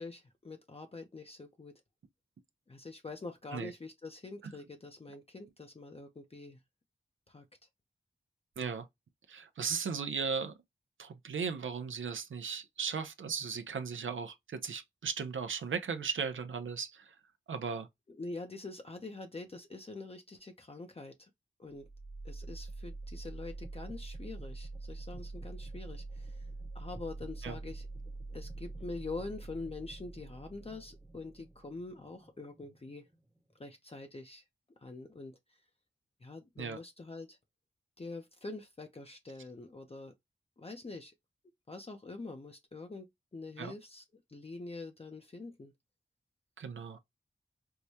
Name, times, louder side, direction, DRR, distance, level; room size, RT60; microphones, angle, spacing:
voice 1, 0.0-1.8 2.7-6.6 7.3-7.4 18.1-21.3 21.6-21.9 22.2-26.5 26.7-27.9 28.3-33.1 33.6-34.4 34.8-35.6 36.2-37.4 38.0-40.1 40.6-41.1 41.7-43.1 43.3-44.0 44.3-45.7, left 3 dB, 30° left, 0.6 m, -45 dB
voice 2, 8.6-8.9 9.3-10.5 11.0-17.2 17.5-17.9 27.4-27.6 36.6-36.8 43.6-43.7 46.6-47.0, right 6 dB, 90° right, 0.5 m, -37 dB
sound 1, 21.7-33.6, right 2 dB, 10° right, 0.8 m, -45 dB
4.6 x 2.2 x 2.7 m
wide cardioid pair, 80°, 20 cm